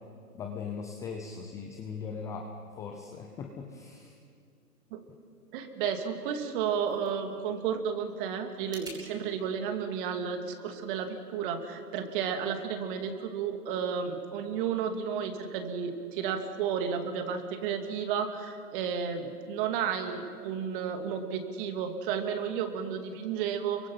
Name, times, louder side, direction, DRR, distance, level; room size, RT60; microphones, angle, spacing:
voice 1, 0.3-2.5 2.8-4.2, left 5 dB, 5° left, 3 dB, 0.6 m, -39 dB
voice 2, 5.5-23.9, right 7 dB, 35° right, 7 dB, 2.4 m, -32 dB
sound 1, 6.4-9.0, right 1 dB, 10° right, 5.2 m, -51 dB
28.5 x 24.0 x 5.8 m, 2.3 s
hypercardioid pair, 135°, 46 cm